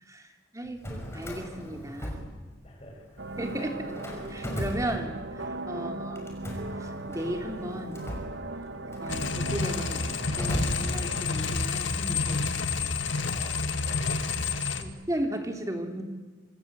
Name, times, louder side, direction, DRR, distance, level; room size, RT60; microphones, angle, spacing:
voice 1, 0.1-2.2 3.4-6.3 6.8-8.0 9.0-10.0 10.3-12.9 14.8-16.0, right 1 dB, 15° right, 4 dB, 3.1 m, -36 dB
Drawer open or close, 0.7-2.8 3.1-5.5 6.2-11.4, equal, 15° left, 5.8 m, -38 dB
voice 2, 2.6-3.2 3.8-4.1 5.7-5.9 13.3-14.9, equal, 30° left, 1 dB, 7.7 m, -49 dB
sound 1, 3.2-11.2, right 2 dB, 60° right, 1.7 m, -38 dB
sound 2, 9.1-14.8, left 4 dB, 65° left, 2.0 m, -29 dB
27.0 x 26.0 x 8.2 m, 1.4 s
head